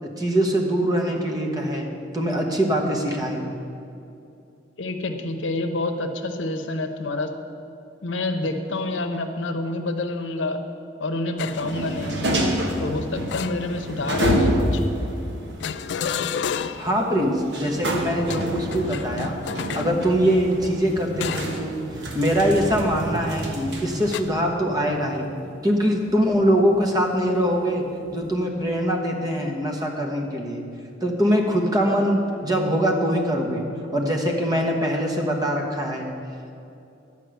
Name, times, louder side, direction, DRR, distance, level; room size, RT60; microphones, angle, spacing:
voice 1, 0.0-1.9 2.1-3.4 16.8-19.4 19.7-21.7 22.1-25.3 25.6-27.9 28.1-30.6 31.0-33.7 33.9-36.1, equal, 20° right, 0 dB, 1.1 m, -23 dB
voice 2, 4.8-7.3 8.0-10.6 11.0-12.2 12.8-14.8, left 2 dB, 85° left, 7 dB, 0.8 m, -27 dB
sound 1, 11.4-11.8 13.3-14.1 15.6-17.0 18.2-20.0 21.2-21.7 22.1-22.3 24.1-24.2, left 7 dB, 65° left, 0.3 m, -31 dB
sound 2, 11.5-24.3, equal, 65° right, 1.3 m, -29 dB
sound 3, 13.6-28.4, equal, 35° right, 2.4 m, -40 dB
10.5 x 5.0 x 8.0 m, 2.6 s
head